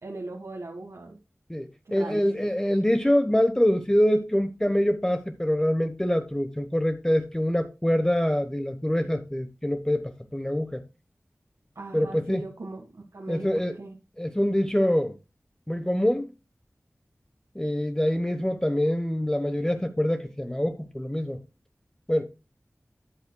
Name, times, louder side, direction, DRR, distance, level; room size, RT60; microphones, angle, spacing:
voice 1, 0.0-1.2 1.9-2.5 11.8-13.9, right 2 dB, 90° right, 1.7 m, -39 dB
voice 2, 1.5-10.8 11.9-12.4 13.3-13.7 14.2-15.1 15.7-16.3 17.5-21.4 22.1-22.2, equal, 10° left, 1.0 m, -25 dB
13.0 x 8.5 x 2.2 m
wide cardioid pair, 60°, 5 cm